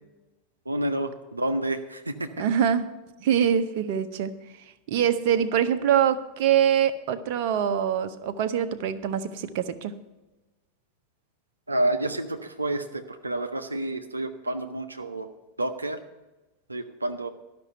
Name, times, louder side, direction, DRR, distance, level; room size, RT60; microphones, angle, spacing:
voice 1, 0.7-2.4 11.7-15.3 15.6-16.0 16.7-17.3, right 1 dB, 85° right, 6 dB, 0.6 m, -29 dB
voice 2, 2.4-2.9 3.2-4.3 4.9-9.9, right 9 dB, 55° right, 10 dB, 0.7 m, -24 dB
12.0 x 6.0 x 7.8 m, 1.1 s
figure-of-eight pair, 85°, 0 cm